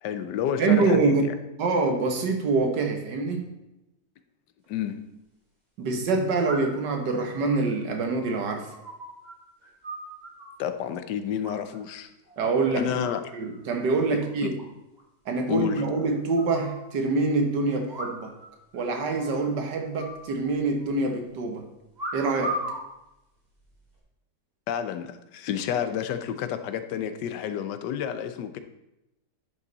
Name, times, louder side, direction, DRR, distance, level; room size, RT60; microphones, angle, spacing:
voice 1, 0.0-1.3 4.7-5.1 10.6-12.1 12.8-13.2 14.1-14.5 15.5-15.8 24.7-28.6, left 9 dB, 90° left, 10 dB, 1.3 m, -30 dB
voice 2, 0.6-1.3 1.6-3.5 5.8-8.7 12.4-12.9 13.3-14.6 15.3-18.3 18.7-21.7 22.1-22.6, right 3 dB, 85° right, 4 dB, 1.9 m, -25 dB
sound 1, 4.6-4.7 6.4-6.9 7.3-9.4 9.6-10.6 11.4-12.0 12.3-12.6 13.0-13.6 13.9-14.0 14.2-14.3 14.6-14.7 15.0-15.1 15.8-16.8 17.9-18.5 18.7-18.8 19.1-19.5 20.0-20.9 22.0-22.8 23.6-23.9, right 1 dB, 25° right, 2.0 m, -37 dB
10.5 x 5.6 x 4.0 m, 0.91 s
omnidirectional pair, 1.8 m